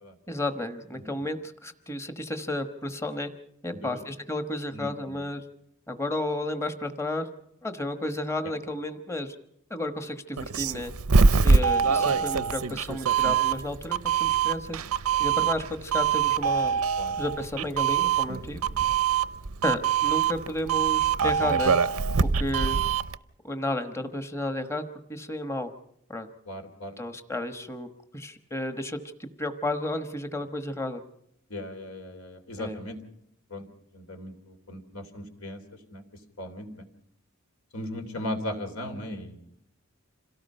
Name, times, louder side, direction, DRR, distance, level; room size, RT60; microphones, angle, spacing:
voice 1, 0.3-3.3 3.6-5.4 5.9-7.3 7.6-9.4 9.7-10.9 11.4-14.8 15.2-16.8 17.2-18.6 19.6-21.8 22.2-22.8 23.4-25.7 26.1-26.3 27.0-27.9 28.1-31.0 32.6-32.8, left 1 dB, 15° left, 7 dB, 1.2 m, -32 dB
voice 2, 3.7-4.0 4.7-5.2 11.4-12.3 12.5-12.6 17.0-17.2 18.6-18.7 26.5-27.0 31.5-33.0 33.5-33.7 33.9-35.6 35.9-36.7 37.7-39.5, left 1 dB, 75° left, 6 dB, 3.3 m, -38 dB
Doorbell, 10.4-23.2, right 6 dB, 85° right, 0.7 m, -24 dB
27.0 x 17.5 x 5.6 m, 0.75 s
head